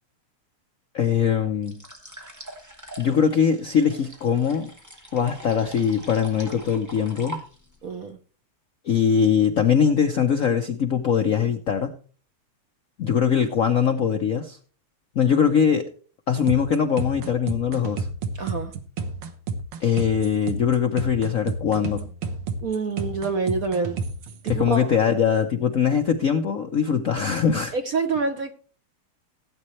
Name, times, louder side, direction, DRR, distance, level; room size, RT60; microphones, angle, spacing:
voice 1, 0.9-1.8 3.0-4.7 5.1-7.4 8.8-11.9 13.0-14.6 15.1-15.9 16.3-18.1 19.8-22.1 24.5-27.7, left 7 dB, 65° left, 0.8 m, -22 dB
sound 1, 1.6-7.8, right 1 dB, 10° right, 2.6 m, -42 dB
voice 2, 7.8-8.2 18.4-18.8 22.6-24.0 24.4-25.0 27.7-28.5, right 4 dB, 55° right, 1.0 m, -27 dB
sound 2, 16.5-24.8, right 4 dB, 75° right, 2.1 m, -31 dB
17.0 x 8.7 x 3.2 m
omnidirectional pair, 2.4 m